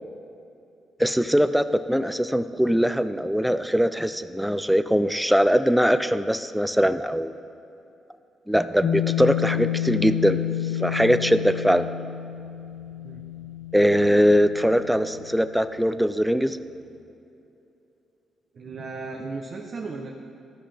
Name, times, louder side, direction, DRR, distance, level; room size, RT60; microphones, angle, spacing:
voice 1, 1.0-7.3 8.5-10.4 10.8-11.9 13.7-16.6, equal, ahead, 11 dB, 0.3 m, -21 dB
sound 1, 8.8-15.5, left 12 dB, 65° left, 0.6 m, -30 dB
voice 2, 18.5-20.1, right 3 dB, 50° right, 0 dB, 0.7 m, -35 dB
14.0 x 5.7 x 3.4 m, 2.7 s
cardioid pair, 90°, 0 cm